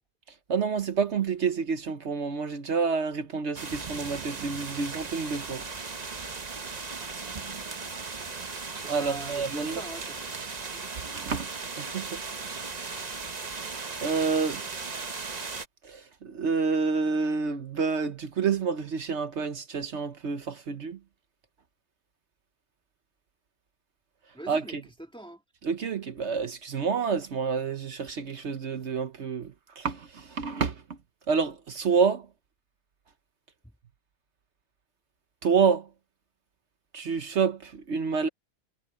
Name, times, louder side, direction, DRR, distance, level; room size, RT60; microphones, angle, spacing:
voice 1, 0.5-5.6 8.9-9.8 11.1-11.5 11.8-12.2 13.8-14.6 15.9-21.0 24.5-24.8 25.7-29.5 29.8-30.0 30.3-30.7 31.3-32.2 35.4-35.8 36.9-38.3, right 5 dB, 65° right, 1.2 m, -28 dB
sound 1, 3.5-15.7, right 4 dB, 35° right, 1.1 m, -37 dB
voice 2, 8.8-10.3 24.3-25.4, right 1 dB, 5° left, 1.7 m, -43 dB
omnidirectional pair, 1.3 m